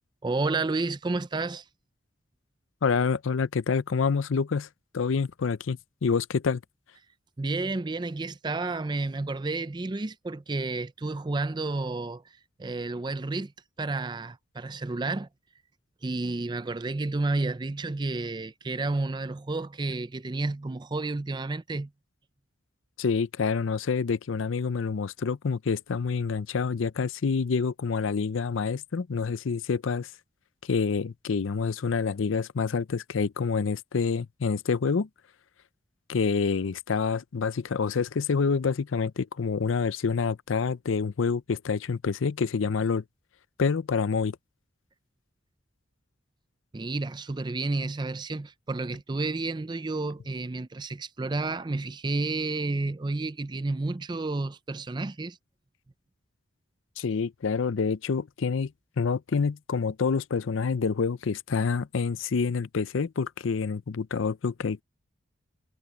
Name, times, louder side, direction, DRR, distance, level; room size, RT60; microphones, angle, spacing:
voice 1, 0.2-1.6 7.4-12.2 12.6-13.5 13.8-15.3 16.0-21.9 46.7-55.4, right 3 dB, 20° right, 0.4 m, -31 dB
voice 2, 2.8-4.7 4.9-6.6 23.0-30.1 30.6-35.1 36.1-43.0 43.6-44.4 57.0-58.7 59.0-64.8, left 5 dB, 75° left, 0.5 m, -27 dB
head